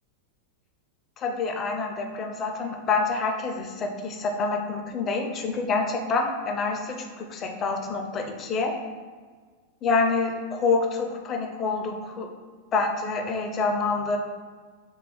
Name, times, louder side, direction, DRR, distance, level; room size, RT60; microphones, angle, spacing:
voice 1, 1.2-8.8 9.8-12.3 12.7-14.2, left 4 dB, 30° left, 4 dB, 0.4 m, -27 dB
3.3 x 2.3 x 3.6 m, 1.5 s
figure-of-eight pair, 90°, 0 cm